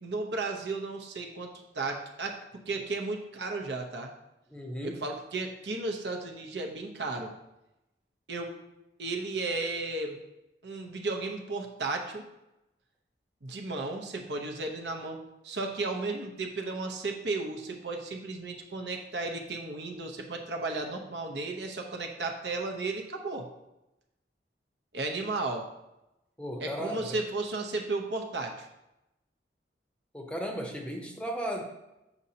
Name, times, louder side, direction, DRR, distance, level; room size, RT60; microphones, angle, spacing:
voice 1, 0.0-2.4 2.7-4.1 5.0-7.3 8.3-8.6 9.0-10.2 10.6-12.3 13.4-23.5 24.9-25.7 26.6-28.7, right 3 dB, 75° right, 2 dB, 0.9 m, -34 dB
voice 2, 4.5-5.0 26.4-27.2 30.1-31.6, equal, 5° left, 2 dB, 0.7 m, -35 dB
7.1 x 5.3 x 2.8 m, 0.92 s
head